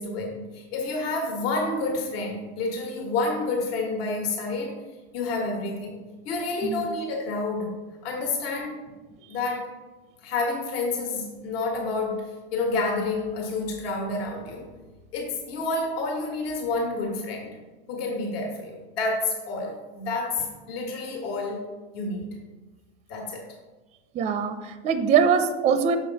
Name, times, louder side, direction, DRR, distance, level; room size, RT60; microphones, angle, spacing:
voice 1, 0.0-4.7 5.1-8.8 9.3-9.7 10.2-14.7 15.1-17.6 17.9-21.7 21.9-22.3 23.1-23.5, left 3 dB, 70° left, 1 dB, 1.5 m, -29 dB
voice 2, 24.1-26.0, right 7 dB, 20° right, 9 dB, 0.4 m, -22 dB
6.5 x 5.0 x 4.0 m, 1.3 s
supercardioid pair, 120°, 32 cm